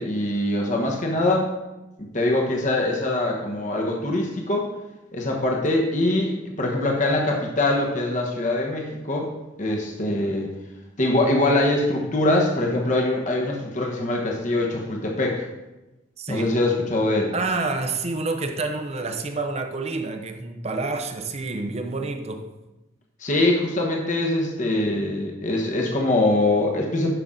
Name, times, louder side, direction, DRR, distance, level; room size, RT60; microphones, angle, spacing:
voice 1, 0.0-1.5 2.0-4.7 5.1-9.3 9.6-10.5 11.0-15.4 16.3-17.3 23.2-27.1, left 2 dB, 40° left, 1.2 m, -23 dB
voice 2, 16.2-16.6 17.3-22.5, right 3 dB, 35° right, 0.7 m, -28 dB
11.5 x 5.9 x 3.8 m
head